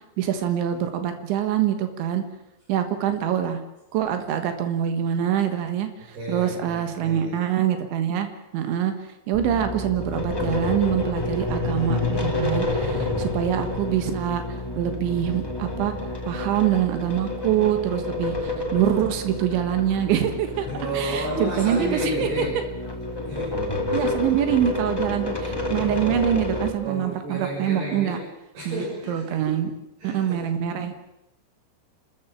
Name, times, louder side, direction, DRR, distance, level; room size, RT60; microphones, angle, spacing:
voice 1, 0.2-2.2 2.7-3.6 3.9-8.3 8.5-8.9 9.3-14.4 14.8-15.9 16.3-20.7 20.9-22.3 23.9-28.2 28.7-29.7 30.0-30.9, right 10 dB, 85° right, 8 dB, 3.9 m, -25 dB
voice 2, 6.1-7.4 12.8-13.3 20.6-22.6 23.3-24.0 25.7-26.3 26.8-28.3 28.6-29.5 30.0-30.4, right 1 dB, 60° right, -7 dB, 8.7 m, -32 dB
sound 1, 9.3-26.7, left 2 dB, 10° left, 1.1 m, -29 dB
29.5 x 14.0 x 7.4 m, 0.89 s
omnidirectional pair, 5.2 m